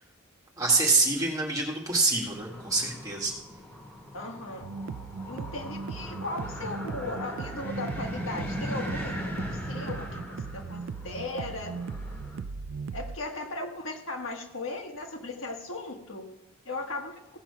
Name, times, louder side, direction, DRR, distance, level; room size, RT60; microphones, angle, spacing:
voice 1, 0.6-3.3, right 3 dB, 15° right, -1 dB, 2.0 m, -26 dB
sound 1, 2.3-12.4, equal, 10° left, 2.3 m, -39 dB
voice 2, 4.1-4.7 5.2-10.2 10.5-11.7 12.9-16.2 16.6-17.2, left 2 dB, 80° left, 3 dB, 1.6 m, -37 dB
sound 2, 4.6-13.2, right 5 dB, 70° right, 0.3 m, -39 dB
16.0 x 5.9 x 5.5 m, 0.89 s
head